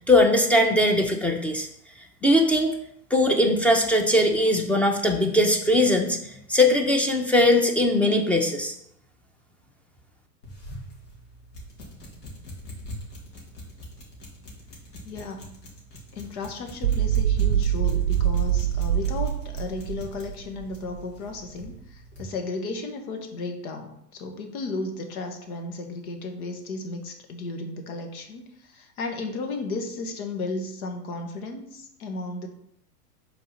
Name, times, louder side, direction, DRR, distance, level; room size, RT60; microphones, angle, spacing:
voice 1, 0.1-1.7 2.2-2.7 3.1-6.2 6.5-8.7, left 1 dB, 5° left, 3 dB, 0.7 m, -20 dB
sound 1, 10.4-22.3, equal, 80° left, 2.4 m, -44 dB
voice 2, 15.0-15.6 16.1-32.5, left 3 dB, 65° left, 5 dB, 1.5 m, -34 dB
sound 2, 16.8-21.0, right 10 dB, 85° right, 0.6 m, -24 dB
5.4 x 4.0 x 5.6 m, 0.76 s
hypercardioid pair, 115°, 47 cm